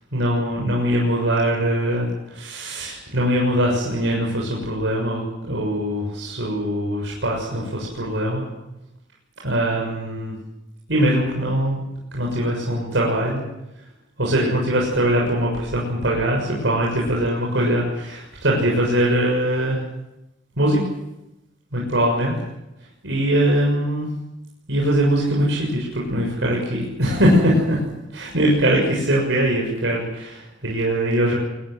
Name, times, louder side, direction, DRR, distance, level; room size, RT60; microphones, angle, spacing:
voice 1, 0.1-8.5 9.4-10.4 10.9-11.8 12.1-13.4 14.2-19.8 20.6-20.8 21.7-22.3 23.0-24.1 24.7-27.8 28.1-31.3, equal, 70° right, -3 dB, 6.9 m, -21 dB
23.5 x 21.0 x 7.9 m, 0.94 s
head